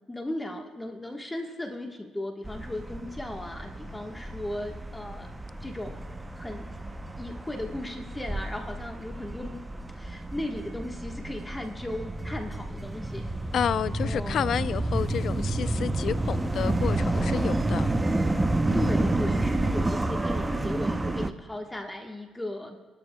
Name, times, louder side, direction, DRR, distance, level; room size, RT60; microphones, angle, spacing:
voice 1, 0.1-5.3 5.6-6.0 6.4-6.7 7.2-9.6 9.9-13.3 14.0-14.5 18.7-22.8, left 1 dB, 15° left, 1.3 m, -36 dB
sound 1, 2.4-21.3, right 2 dB, 15° right, 0.6 m, -30 dB
voice 2, 13.5-17.9, left 8 dB, 65° left, 0.4 m, -30 dB
29.5 x 12.0 x 2.2 m
cardioid pair, 90°, 0 cm